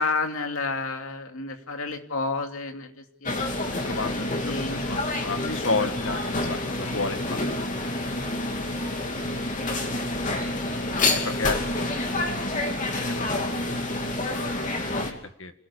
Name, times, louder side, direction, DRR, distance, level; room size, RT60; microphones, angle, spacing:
voice 1, 0.0-3.4 4.1-5.9 6.9-7.1 8.2-8.4, left 3 dB, 85° left, 4 dB, 2.7 m, -32 dB
sound 1, 3.3-15.1, left 2 dB, 40° left, 2.9 m, -28 dB
voice 2, 3.8-8.3 10.2-10.4 10.7-11.6 12.1-12.9 13.2-14.2 14.6-15.5, left 3 dB, 65° left, 8 dB, 2.0 m, -33 dB
27.5 x 17.5 x 7.1 m, 0.70 s
head